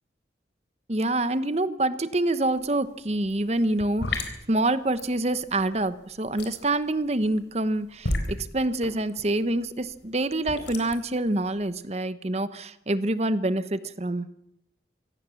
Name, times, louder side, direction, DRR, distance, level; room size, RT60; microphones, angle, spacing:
voice 1, 0.9-14.3, right 2 dB, 35° right, 13 dB, 1.0 m, -26 dB
sound 1, 2.5-2.7 3.0-11.7, left 2 dB, 75° left, 3.9 m, -34 dB
25.5 x 17.5 x 7.1 m, 0.79 s
head